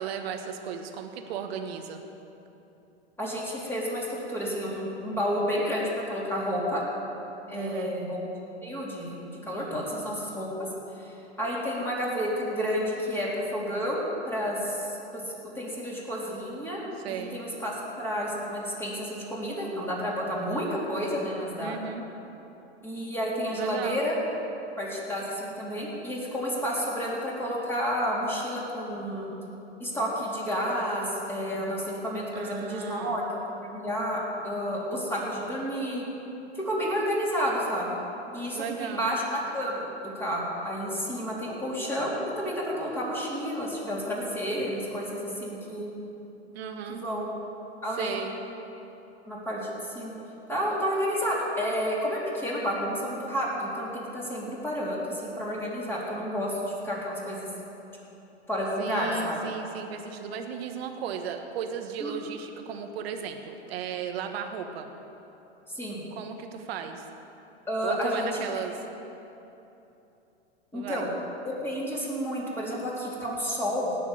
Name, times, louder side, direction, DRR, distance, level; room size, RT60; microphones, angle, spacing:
voice 1, 0.0-2.0 7.5-8.0 17.0-17.4 21.6-22.0 23.6-24.1 32.3-33.2 38.5-39.1 46.5-47.0 48.0-48.4 58.8-64.9 66.1-67.0 67.8-68.8 70.7-71.1, right 7 dB, 65° right, 5 dB, 1.5 m, -35 dB
voice 2, 3.2-6.9 7.5-8.2 8.6-10.5 10.9-15.2 15.5-16.8 17.1-21.8 22.8-24.1 24.8-29.3 29.8-36.1 36.5-38.0 38.3-39.2 39.5-45.9 46.9-47.3 47.8-48.2 49.2-50.1 50.5-57.5 58.5-59.4 62.0-62.1 65.7-66.0 67.7-68.6 70.7-71.1 71.4-73.9, equal, 5° left, -6 dB, 3.9 m, -30 dB
18.0 x 6.7 x 8.4 m, 2.9 s
hypercardioid pair, 110°, 33 cm